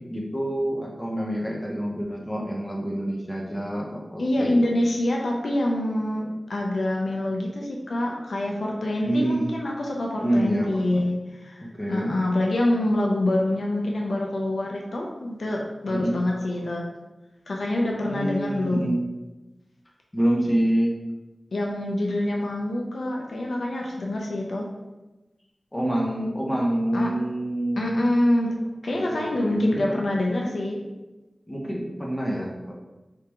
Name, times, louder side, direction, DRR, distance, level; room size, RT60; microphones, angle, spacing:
voice 1, 0.0-4.6 9.0-9.5 10.2-11.1 11.6-12.2 15.9-16.2 18.0-19.1 20.1-21.0 25.7-28.1 28.9-30.1 31.5-32.7, right 1 dB, 20° left, -1 dB, 1.0 m, -27 dB
voice 2, 4.2-16.8 17.5-18.9 21.5-24.7 26.9-27.1 27.8-28.6 28.8-30.8, left 1 dB, 85° left, -1 dB, 0.7 m, -26 dB
4.8 x 3.5 x 3.0 m, 1.1 s
wide cardioid pair, 55°, 0 cm